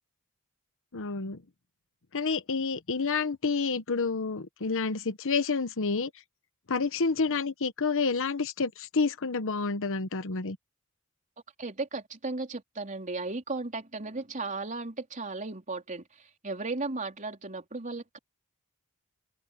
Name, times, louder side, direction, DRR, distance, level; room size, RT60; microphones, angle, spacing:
voice 1, 0.9-1.4 2.1-6.1 6.7-10.6, left 4 dB, 60° left, 1.0 m, -29 dB
voice 2, 11.6-18.2, right 3 dB, 35° right, 4.0 m, -35 dB
open air
head